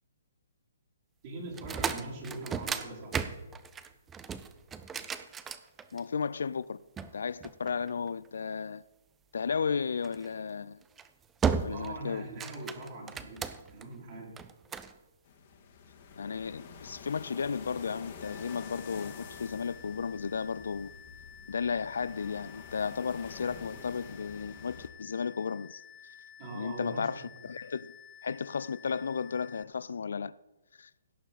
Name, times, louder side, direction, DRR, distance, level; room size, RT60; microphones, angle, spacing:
voice 1, 1.2-3.4 11.7-14.4 26.4-27.3, right 2 dB, 40° right, 3.4 m, -42 dB
sound 1, 1.5-6.2 7.0-8.3 10.0-10.3 10.8-11.1 11.4-12.0 12.3-13.8 14.4-14.9, right 6 dB, 15° right, 0.6 m, -35 dB
voice 2, 5.9-6.8 7.1-8.8 9.3-10.8 11.6-12.3 16.2-20.9 21.5-25.8 26.5-28.0 28.2-30.3 30.8-30.9, left 6 dB, 65° left, 0.3 m, -34 dB
sound 2, 15.2-24.9, left 5 dB, 40° left, 1.8 m, -48 dB
sound 3, 18.2-29.6, left 8 dB, 20° left, 0.7 m, -53 dB
17.0 x 7.1 x 4.0 m
figure-of-eight pair, 130°, 0 cm